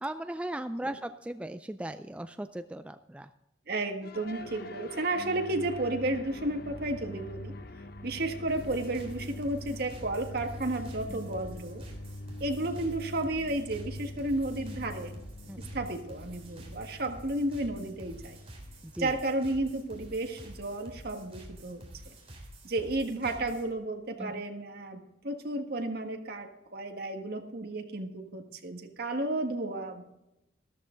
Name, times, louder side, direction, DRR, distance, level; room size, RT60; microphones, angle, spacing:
voice 1, 0.0-3.3 11.1-11.2 15.5-15.6 18.8-19.2 24.2-24.4, right 1 dB, 5° right, 10 dB, 0.3 m, -37 dB
voice 2, 3.7-7.5 8.0-11.8 12.4-15.2 15.6-18.4 19.0-21.8 22.6-30.0, right 2 dB, 55° right, 5 dB, 1.6 m, -33 dB
sound 1, 4.0-22.3, left 1 dB, 55° left, 0.8 m, -45 dB
sound 2, 8.5-23.7, right 1 dB, 30° right, 3.7 m, -49 dB
13.5 x 13.5 x 3.9 m, 0.91 s
head